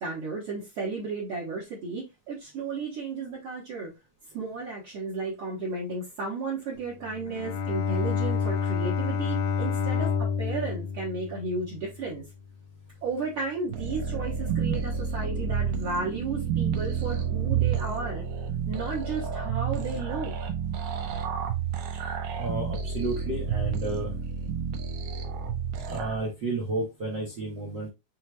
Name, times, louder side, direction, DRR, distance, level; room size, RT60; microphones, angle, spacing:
voice 1, 0.0-3.9 4.3-12.2 13.0-18.2 18.7-20.3, right 3 dB, 50° right, 1.8 m, -33 dB
Bowed string instrument, 7.0-12.2, left 6 dB, 80° left, 2.2 m, -29 dB
sound 1, 13.7-26.2, right 7 dB, 85° right, 2.5 m, -30 dB
voice 2, 22.4-24.1 25.9-27.9, right 2 dB, 70° right, 1.1 m, -32 dB
6.4 x 3.1 x 2.3 m
omnidirectional pair, 3.8 m